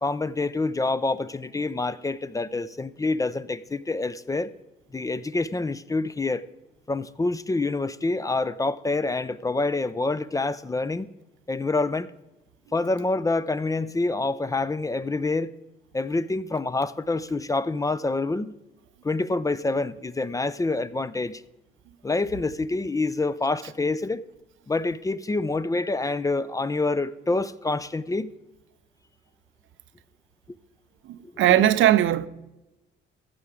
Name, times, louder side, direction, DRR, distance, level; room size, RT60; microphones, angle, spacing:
voice 1, 0.0-4.5 4.9-6.4 6.9-11.1 11.5-12.1 12.7-15.5 15.9-18.5 19.0-21.4 22.0-24.2 24.7-28.3, left 3 dB, 15° left, 0.4 m, -27 dB
voice 2, 31.0-32.3, right 12 dB, 80° right, 0.6 m, -19 dB
15.0 x 5.8 x 4.8 m
cardioid pair, 90°, 20 cm